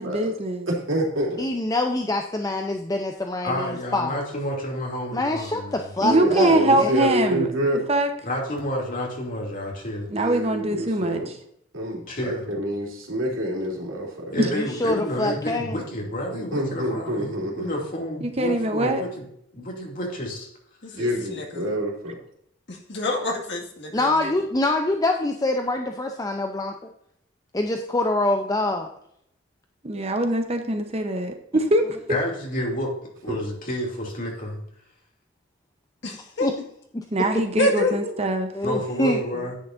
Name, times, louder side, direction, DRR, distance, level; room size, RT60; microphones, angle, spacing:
voice 1, 0.0-0.7 6.0-7.5 7.9-8.1 10.1-11.3 14.4-14.5 18.2-19.0 24.2-24.3 29.8-32.0 37.1-38.5, right 1 dB, 30° right, 6 dB, 0.8 m, -23 dB
voice 2, 0.7-1.5 6.0-7.8 10.1-11.3 11.7-14.3 16.3-17.7 20.9-22.1 33.3-33.4, equal, 85° right, -2 dB, 3.1 m, -27 dB
voice 3, 1.4-4.2 5.1-5.6 6.0-7.1 14.4-15.8 23.9-26.7 27.5-28.9 36.4-36.6 36.9-37.0 38.5-39.2, left 2 dB, 20° left, 3 dB, 0.6 m, -25 dB
voice 4, 3.4-5.9 8.2-10.1 12.1-12.4 14.3-19.2 19.5-20.5 20.9-21.0 32.1-32.9 33.2-34.6 38.6-39.5, equal, 40° left, -1 dB, 2.7 m, -30 dB
voice 5, 20.8-21.6 22.7-24.1 36.0-36.5 37.6-38.1, left 1 dB, 60° left, 0 dB, 1.9 m, -27 dB
10.0 x 8.5 x 2.6 m, 0.71 s
head